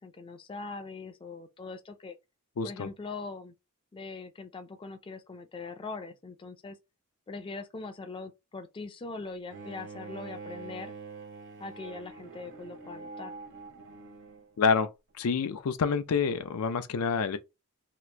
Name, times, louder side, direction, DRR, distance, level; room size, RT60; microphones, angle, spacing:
voice 1, 0.0-2.2 2.6-3.5 3.9-6.8 7.3-10.9 11.6-13.3, left 3 dB, 25° left, 0.3 m, -41 dB
voice 2, 2.6-2.9 14.6-14.9 15.2-17.4, left 5 dB, 85° left, 0.4 m, -27 dB
Bowed string instrument, 9.5-14.5, right 4 dB, 60° right, 0.8 m, -45 dB
2.9 x 2.4 x 3.3 m
head